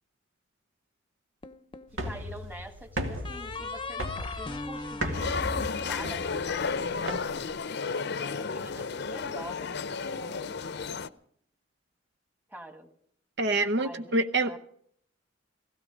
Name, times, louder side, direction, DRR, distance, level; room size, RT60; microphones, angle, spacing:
sound 1, 1.4-2.3 3.2-6.6, left 3 dB, 25° left, 0.8 m, -39 dB
sound 2, 1.9-7.6, equal, 90° right, 2.1 m, -37 dB
voice 1, 2.0-7.6 8.4-10.5 12.5-12.9 13.8-14.6, right 1 dB, 10° right, 7 dB, 1.6 m, -46 dB
sound 3, 5.1-11.1, left 5 dB, 60° left, 0.6 m, -32 dB
voice 2, 13.4-14.6, right 2 dB, 60° right, 7 dB, 0.7 m, -26 dB
16.5 x 16.5 x 5.1 m, 0.66 s
head